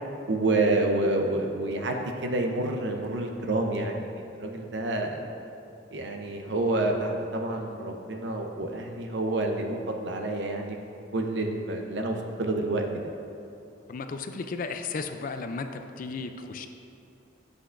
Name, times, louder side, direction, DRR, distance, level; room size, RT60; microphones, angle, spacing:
voice 1, 0.3-5.2 5.9-10.8 11.1-12.8, right 2 dB, 60° right, 3 dB, 0.7 m, -28 dB
voice 2, 13.9-16.7, left 4 dB, 45° left, 7 dB, 0.4 m, -34 dB
8.2 x 7.9 x 2.5 m, 2.7 s
head